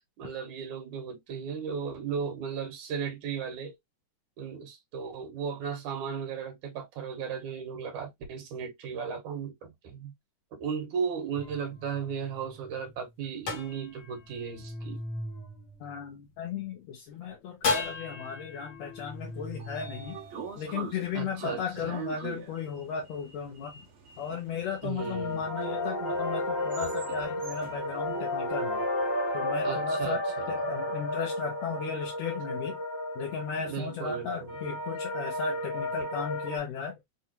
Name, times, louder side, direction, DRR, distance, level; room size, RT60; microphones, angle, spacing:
voice 1, 0.2-3.7 4.4-10.1 10.5-15.0 21.1-21.9 24.8-25.5 29.6-30.6 33.6-34.5, right 6 dB, 85° right, 2.7 m, -36 dB
sound 1, 11.3-16.6 17.6-21.0, left 3 dB, 50° left, 1.2 m, -37 dB
voice 2, 15.8-20.2 20.6-23.7 24.2-28.8 29.3-32.8 33.2-37.0, left 6 dB, 70° left, 1.9 m, -35 dB
Sliding door, 19.2-29.3, right 7 dB, 55° right, 2.0 m, -45 dB
sound 2, 25.0-36.6, left 1 dB, 15° left, 1.0 m, -33 dB
5.6 x 2.4 x 2.8 m
omnidirectional pair, 3.4 m